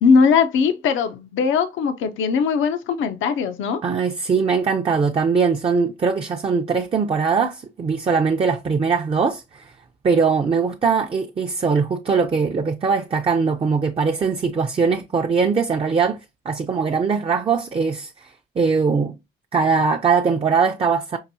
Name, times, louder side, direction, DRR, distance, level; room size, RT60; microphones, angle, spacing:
voice 1, 0.0-3.8, left 5 dB, 80° left, 0.6 m, -19 dB
voice 2, 3.8-9.7 10.0-16.2 16.5-19.1 19.5-21.2, right 5 dB, 30° right, 0.5 m, -21 dB
5.7 x 2.6 x 2.7 m
cardioid pair, 90°, 20 cm